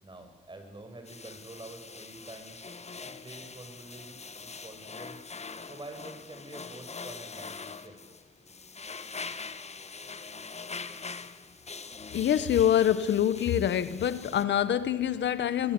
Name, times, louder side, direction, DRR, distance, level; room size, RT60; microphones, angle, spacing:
voice 1, 0.0-2.6 3.0-5.2 5.7-8.1, right 2 dB, 25° right, 7.2 m, -47 dB
sound 1, 1.1-14.4, left 4 dB, 35° left, 1.6 m, -43 dB
voice 2, 12.1-15.7, left 10 dB, 85° left, 1.4 m, -25 dB
25.0 x 21.0 x 9.9 m
cardioid pair, 80°, 18 cm